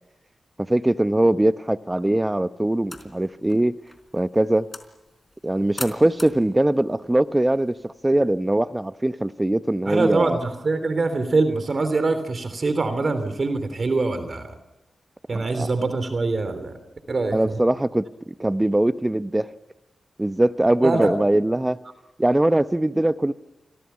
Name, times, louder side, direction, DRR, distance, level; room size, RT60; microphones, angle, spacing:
voice 1, 0.7-3.8 4.1-4.7 5.4-10.4 15.3-15.7 17.3-19.5 20.2-21.8 22.2-23.3, right 1 dB, 20° right, 0.9 m, -21 dB
sound 1, 2.8-8.3, left 2 dB, 30° left, 4.0 m, -42 dB
voice 2, 9.8-14.5 15.3-16.8 17.1-17.6 20.8-21.1, right 3 dB, 55° right, 3.3 m, -24 dB
28.5 x 24.0 x 5.8 m
supercardioid pair, 40°, 0 cm